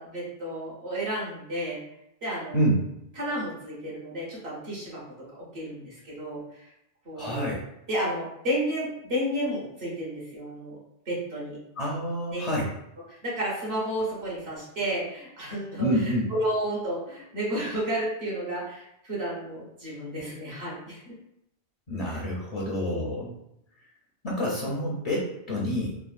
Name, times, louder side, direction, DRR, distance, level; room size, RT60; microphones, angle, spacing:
voice 1, 0.0-1.8 2.2-2.6 3.2-5.0 5.4-6.7 7.0-7.5 7.9-10.7 11.1-11.6 12.3-12.4 13.1-21.1 22.1-22.2, right 1 dB, 65° right, -5 dB, 1.4 m, -32 dB
voice 2, 7.2-7.6 11.8-12.7 15.8-16.3 21.9-23.3 24.2-26.0, equal, 45° left, -4 dB, 0.5 m, -27 dB
3.4 x 2.1 x 2.4 m, 0.80 s
omnidirectional pair, 1.1 m